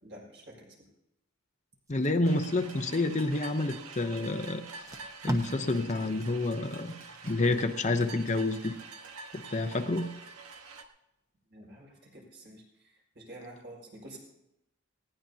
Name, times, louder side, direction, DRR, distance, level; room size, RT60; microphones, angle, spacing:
voice 1, 0.0-0.7 11.5-14.2, right 1 dB, 55° right, -2 dB, 6.0 m, -49 dB
voice 2, 1.9-4.6 5.2-6.9 7.2-8.7 9.3-10.1, left 2 dB, 35° left, 6 dB, 0.7 m, -29 dB
Packing tape duct tape, 1.9-3.5 4.2-4.3 4.7-7.7 8.1-8.3, right 1 dB, 15° right, 1.0 m, -40 dB
sound 1, 2.2-10.8, right 4 dB, 85° right, 1.4 m, -47 dB
19.5 x 17.0 x 2.8 m, 0.85 s
head